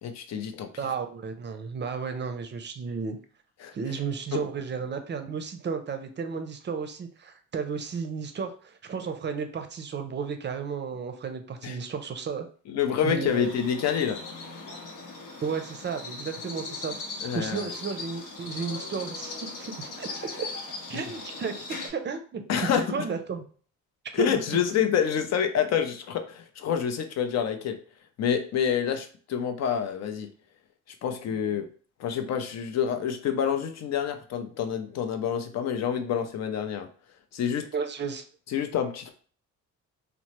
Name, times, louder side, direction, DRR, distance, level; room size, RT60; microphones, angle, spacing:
voice 1, 0.0-0.7 3.6-3.7 4.3-4.4 11.6-11.8 12.7-14.2 17.2-17.7 20.9-21.1 22.5-22.9 24.1-27.8 28.2-30.3 31.0-31.7 32.0-36.9 37.3-37.7 38.5-39.1, left 8 dB, 60° left, 7 dB, 0.5 m, -27 dB
voice 2, 0.8-3.2 3.7-12.5 13.0-13.5 15.4-17.0 17.3-20.1 20.4-20.5 20.9-23.4 24.1-24.6 31.3-31.4 37.7-38.2, right 5 dB, 35° right, 7 dB, 0.5 m, -33 dB
sound 1, 13.3-21.9, left 3 dB, 85° left, 0.8 m, -39 dB
2.9 x 2.0 x 2.9 m, 0.43 s
cardioid pair, 90°, 30 cm